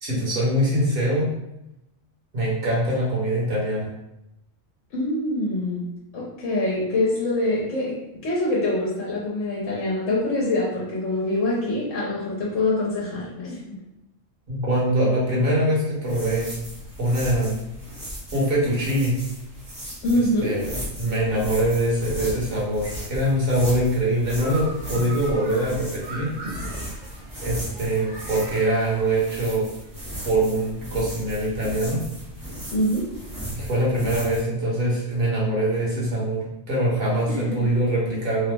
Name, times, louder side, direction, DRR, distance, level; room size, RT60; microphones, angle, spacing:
voice 1, 0.0-1.3 2.3-3.9 14.5-16.5 17.0-17.6 18.3-19.1 20.4-20.7 21.0-26.3 27.4-29.6 30.2-32.0 33.5-38.5, right 1 dB, 50° right, -5 dB, 1.2 m, -23 dB
voice 2, 4.9-5.8 6.1-13.6 20.0-20.6 32.7-33.1 37.3-37.7, left 1 dB, 75° left, -5 dB, 1.1 m, -25 dB
sound 1, 16.0-34.4, equal, 20° right, 0.6 m, -36 dB
sound 2, 24.4-29.6, right 1 dB, 90° right, 1.4 m, -38 dB
3.1 x 2.0 x 3.3 m, 0.87 s
omnidirectional pair, 1.3 m